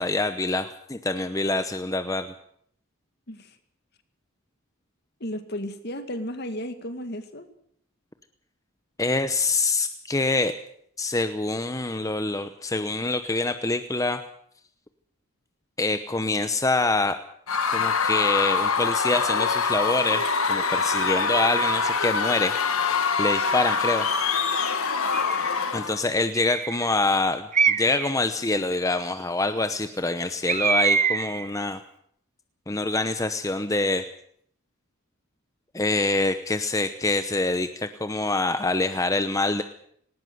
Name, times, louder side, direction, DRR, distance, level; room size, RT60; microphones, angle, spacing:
voice 1, 0.0-2.3 9.0-10.5 11.0-14.2 15.8-17.2 17.7-20.2 20.5-22.5 23.2-24.1 25.7-31.8 32.7-34.0 35.7-39.6, left 2 dB, 15° left, 9 dB, 0.8 m, -25 dB
voice 2, 5.2-7.5, equal, 50° left, 9 dB, 2.2 m, -34 dB
Screaming / Cheering / Crowd, 17.5-26.0, left 5 dB, 75° left, 1.9 m, -24 dB
Bird, 25.1-25.6 26.3-26.9 27.5-28.1 30.5-31.5, right 6 dB, 35° right, 0.9 m, -24 dB
19.0 x 18.5 x 8.0 m, 0.67 s
head